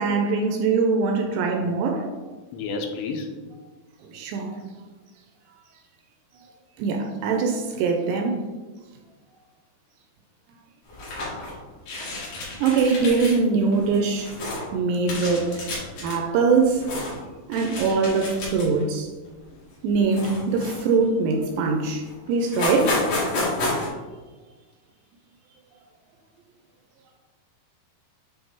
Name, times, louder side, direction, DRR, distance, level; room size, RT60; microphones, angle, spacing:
voice 1, 0.0-2.1 4.1-4.6 6.8-8.5 12.6-14.4 14.7-15.6 16.0-16.9 17.5-19.1 19.8-23.0, right 4 dB, 80° right, 3 dB, 2.5 m, -22 dB
voice 2, 2.5-3.3 12.9-13.7, left 5 dB, 85° left, 4 dB, 2.8 m, -31 dB
sound 1, 10.9-11.5 11.8-13.4 13.7-14.6 15.0-16.2 16.6-17.2 17.5-18.8 19.3-19.4 20.1-21.1 21.6-21.7 22.0-22.1 22.4-23.9, left 2 dB, 55° left, 3.3 m, -30 dB
8.6 x 3.1 x 3.6 m, 1.3 s
omnidirectional pair, 5.2 m